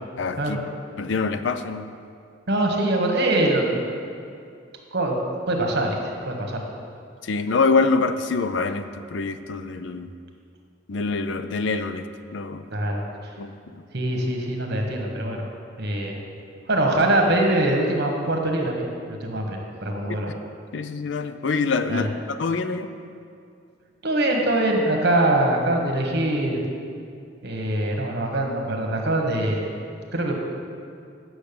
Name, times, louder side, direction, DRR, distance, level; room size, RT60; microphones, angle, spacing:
voice 1, 0.2-0.6 1.0-1.9 7.2-10.1 10.9-12.0 12.3-12.6 13.4-13.5 20.7-22.9, left 4 dB, 65° left, 10 dB, 0.5 m, -25 dB
voice 2, 2.5-3.8 4.9-5.1 5.5-6.6 12.7-13.3 13.9-15.5 15.8-16.2 16.7-20.3 21.9-22.1 24.0-26.6 27.4-29.7 30.1-30.3, right 1 dB, 60° right, 2 dB, 1.4 m, -23 dB
8.6 x 6.3 x 6.8 m, 2.4 s
head